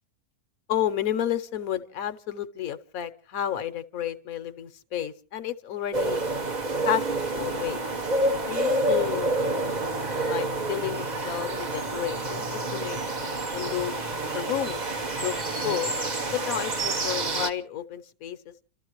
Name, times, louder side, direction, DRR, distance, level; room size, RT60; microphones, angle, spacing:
voice 1, 0.7-6.2 6.8-7.8 8.5-9.3 10.3-13.0 13.5-14.0 14.3-14.8 15.2-15.4 15.6-15.9 16.3-18.5, left 11 dB, 65° left, 1.3 m, -31 dB
sound 1, 5.9-17.5, right 2 dB, 30° right, 1.0 m, -28 dB
29.5 x 13.5 x 3.0 m
omnidirectional pair, 1.6 m